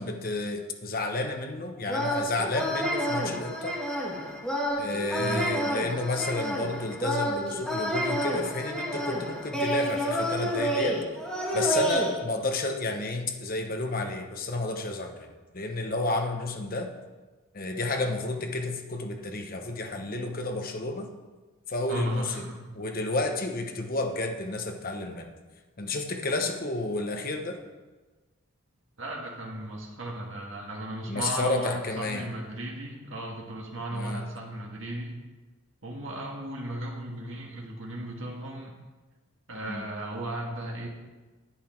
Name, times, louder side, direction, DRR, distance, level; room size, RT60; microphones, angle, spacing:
voice 1, 0.0-3.8 4.8-11.0 11.5-16.9 17.5-21.1 21.7-22.5 22.7-25.3 25.8-27.6 31.1-32.2 33.9-34.2 39.6-39.9, left 2 dB, 40° left, 4 dB, 1.0 m, -31 dB
sound 1, 1.9-12.1, equal, 5° left, 1.5 m, -29 dB
voice 2, 5.2-5.5 21.9-22.6 29.0-35.1 35.8-38.7 39.5-40.9, right 1 dB, 65° right, -2 dB, 1.7 m, -35 dB
10.0 x 8.6 x 4.5 m, 1.2 s
head